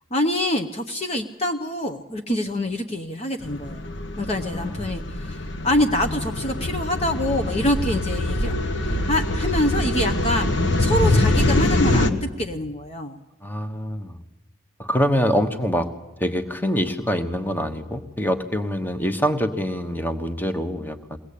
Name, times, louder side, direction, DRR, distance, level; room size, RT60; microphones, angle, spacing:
voice 1, 0.1-3.9 4.2-8.5 8.8-10.5 10.8-13.2, left 1 dB, 30° left, 5 dB, 0.8 m, -25 dB
sound 1, 3.4-12.1, left 2 dB, 60° left, 1.2 m, -24 dB
voice 2, 4.5-4.9 13.4-14.2 14.8-15.9 16.2-21.2, equal, 10° left, 8 dB, 1.1 m, -25 dB
22.5 x 18.0 x 8.5 m, 1.0 s
head